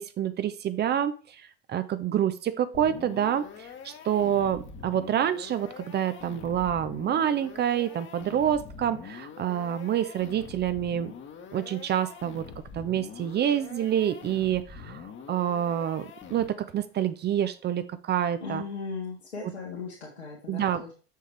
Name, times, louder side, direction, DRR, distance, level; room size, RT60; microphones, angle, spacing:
voice 1, 0.0-11.1 11.5-12.5 12.7-18.6 19.4-19.5 20.5-20.8, right 10 dB, 35° right, 12 dB, 0.6 m, -27 dB
sound 1, 2.7-16.8, left 6 dB, 40° left, 1.3 m, -44 dB
voice 2, 18.4-20.9, left 4 dB, 85° left, -6 dB, 1.8 m, -37 dB
6.5 x 6.5 x 3.3 m, 0.38 s
hypercardioid pair, 70°, 31 cm